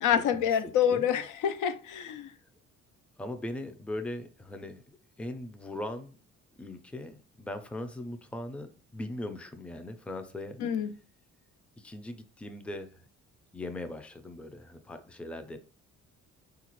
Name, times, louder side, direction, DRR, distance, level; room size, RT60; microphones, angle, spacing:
voice 1, 0.0-2.3 10.6-11.0, left 9 dB, 80° left, 0.5 m, -27 dB
voice 2, 3.2-6.1 6.6-10.6 11.8-13.0 13.5-15.6, left 1 dB, 5° left, 0.4 m, -39 dB
3.7 x 2.4 x 3.0 m
cardioid pair, 90°, 30 cm